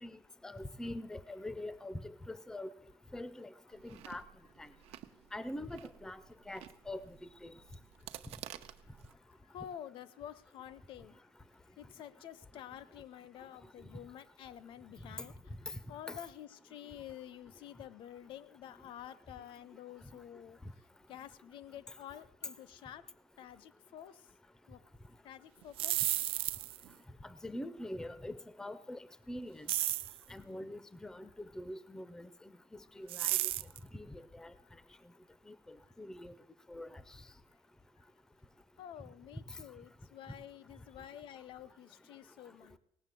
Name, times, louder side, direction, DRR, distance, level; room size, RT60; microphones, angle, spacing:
voice 1, 0.0-2.7 3.1-3.5 3.8-4.2 4.6-4.7 5.3-6.2 6.5-7.2 7.4-7.6 15.2-15.3 15.7-15.8 16.1-16.2 27.2-29.7 30.3-32.3 33.0-33.4 33.9-34.5 35.5-36.3 36.7-37.2, left 1 dB, 5° left, 16 dB, 0.5 m, -44 dB
Chewing mastication, 3.7-9.1, right 12 dB, 85° right, 0.8 m, -52 dB
voice 2, 9.4-11.3 11.8-20.8 21.1-23.1 23.4-24.3 24.7-24.8 25.2-26.0 33.0-33.1 38.0-38.1 38.8-42.8, left 10 dB, 60° left, 17 dB, 0.6 m, -50 dB
sound 1, 25.6-26.9 29.7-30.2 33.1-33.8, right 15 dB, 65° right, 0.4 m, -33 dB
18.0 x 7.3 x 7.6 m, 0.90 s
cardioid pair, 170°, 10 cm